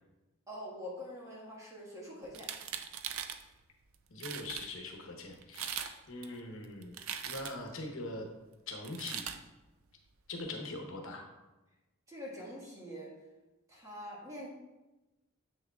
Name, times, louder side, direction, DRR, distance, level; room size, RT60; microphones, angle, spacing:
voice 1, 0.5-2.5 12.1-13.1 13.7-14.5, equal, 15° right, -5 dB, 1.5 m, -45 dB
sound 1, 2.3-3.4 3.9-4.7 5.4-5.9 6.2-7.7 8.8-9.4, right 9 dB, 75° right, 0.4 m, -40 dB
voice 2, 4.1-7.0 7.3-8.3 8.7-9.2 10.3-11.2, left 2 dB, 70° left, 1 dB, 1.0 m, -42 dB
7.8 x 6.4 x 2.4 m, 1.1 s
head